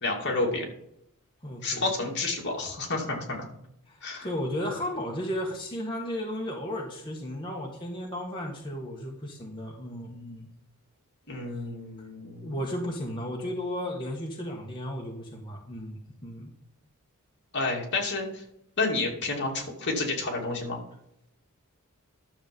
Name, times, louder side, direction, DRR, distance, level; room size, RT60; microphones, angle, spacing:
voice 1, 0.0-0.6 1.6-3.4 4.0-4.3 11.3-12.6 17.5-18.4 18.8-20.8, left 3 dB, 50° left, 0 dB, 2.6 m, -30 dB
voice 2, 1.4-1.8 3.9-10.5 12.0-12.1 12.4-16.5, equal, 20° left, -1 dB, 1.5 m, -34 dB
12.0 x 7.1 x 5.3 m, 0.77 s
head